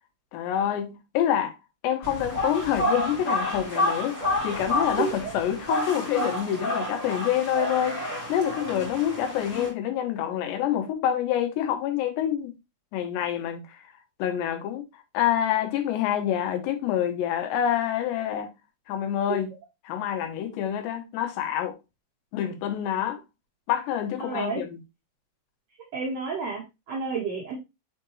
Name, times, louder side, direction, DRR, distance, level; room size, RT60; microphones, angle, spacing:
voice 1, 0.3-1.5 1.8-12.5 12.9-13.9 14.2-14.8 15.1-18.5 18.9-19.5 19.8-21.8 22.3-23.2 23.7-24.8, left 10 dB, 85° left, 3.2 m, -27 dB
sound 1, 2.0-9.7, left 1 dB, 40° left, 1.0 m, -29 dB
voice 2, 24.2-24.6 25.9-27.6, right 5 dB, 65° right, 1.7 m, -30 dB
6.7 x 4.5 x 3.1 m
omnidirectional pair, 4.9 m